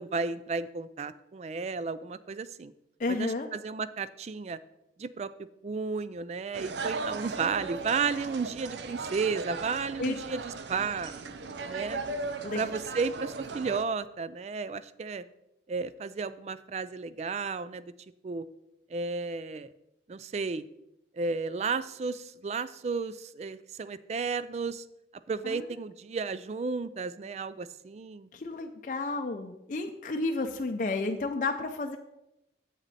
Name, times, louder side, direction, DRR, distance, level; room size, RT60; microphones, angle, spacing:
voice 1, 0.0-2.7 3.1-4.6 5.0-5.3 5.6-11.1 11.6-12.0 12.5-15.2 15.7-17.9 18.2-18.5 18.9-19.7 20.1-20.6 21.1-24.8 25.3-28.3, right 4 dB, 40° right, 15 dB, 0.3 m, -33 dB
voice 2, 3.0-3.5 10.0-10.1 12.4-12.6 25.4-25.7 28.3-32.0, left 3 dB, 45° left, 4 dB, 0.5 m, -31 dB
sound 1, 6.5-13.8, right 4 dB, 80° right, 0.6 m, -37 dB
8.1 x 7.3 x 4.1 m, 0.85 s
head